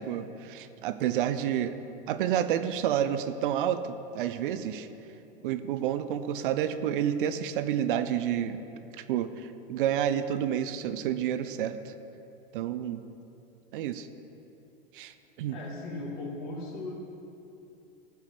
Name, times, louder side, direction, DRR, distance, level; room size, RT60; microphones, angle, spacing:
voice 1, 0.0-1.7 2.1-4.9 5.4-8.6 8.9-11.9 12.5-13.0 13.7-14.1 14.9-15.1 15.4-15.6, right 10 dB, 60° right, 11 dB, 0.7 m, -29 dB
voice 2, 15.5-17.0, left 2 dB, 55° left, -2 dB, 3.0 m, -37 dB
15.0 x 5.8 x 5.9 m, 2.8 s
hypercardioid pair, 95°, 29 cm